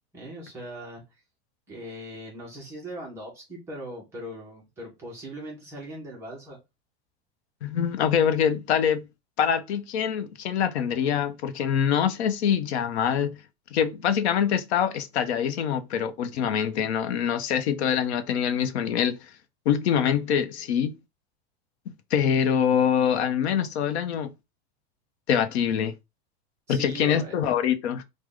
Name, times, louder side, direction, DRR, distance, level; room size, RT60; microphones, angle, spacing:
voice 1, 0.1-1.2 1.7-6.6 26.7-27.4, right 1 dB, 10° right, 0.4 m, -40 dB
voice 2, 7.6-9.1 9.4-13.4 13.7-19.2 19.7-21.0 22.1-24.3 25.3-25.9 26.7-28.0, left 8 dB, 80° left, 0.6 m, -24 dB
3.1 x 2.1 x 3.5 m
supercardioid pair, 175°, 32 cm